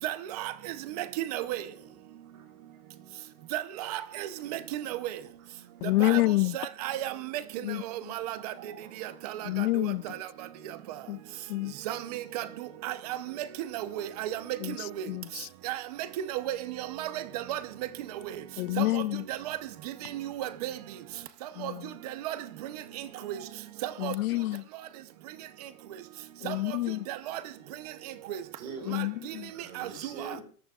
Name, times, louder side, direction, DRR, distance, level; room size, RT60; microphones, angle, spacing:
voice 1, 0.0-0.5 1.0-1.1 1.3-1.6 3.5-5.0 6.0-6.2 6.5-7.1 8.1-8.5 9.2-9.3 9.7-9.8 11.9-12.4 12.8-12.9 13.7-14.4 15.6-15.8 16.3-17.6 18.8-19.0 19.3-19.6 20.1-20.7 21.6-21.7 22.2-22.4 23.3-23.4 23.8-24.1 26.5-26.6 27.1-27.4 28.3-28.4 29.8-29.9, right 13 dB, 25° right, 0.6 m, -33 dB
voice 2, 1.5-1.9 2.3-2.5 4.6-5.0 8.4-9.2 9.5-9.7 11.4-11.5 23.1-23.5 24.2-24.3 27.6-29.0 29.5-30.4, right 4 dB, 65° right, 4.3 m, -46 dB
voice 3, 5.8-6.5 7.6-7.8 9.4-10.0 11.1-11.2 11.5-11.7 14.6-14.8 15.1-15.5 18.6-19.2 21.6-21.8 24.0-24.6 26.4-27.0 28.9-29.5, left 18 dB, 75° left, 0.5 m, -28 dB
24.0 x 12.5 x 2.4 m
supercardioid pair, 180°, 45 cm